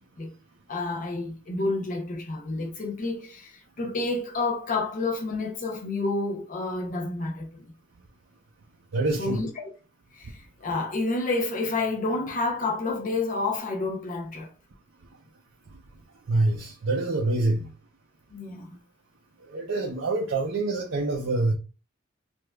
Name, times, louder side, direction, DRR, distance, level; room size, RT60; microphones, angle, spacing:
voice 1, 0.7-7.7 9.2-9.7 10.1-14.5 18.3-18.8, left 3 dB, 45° left, 0.6 m, -29 dB
voice 2, 8.9-9.4 16.3-17.7 19.5-21.5, right 2 dB, 80° right, 0.6 m, -26 dB
4.7 x 2.4 x 2.2 m
head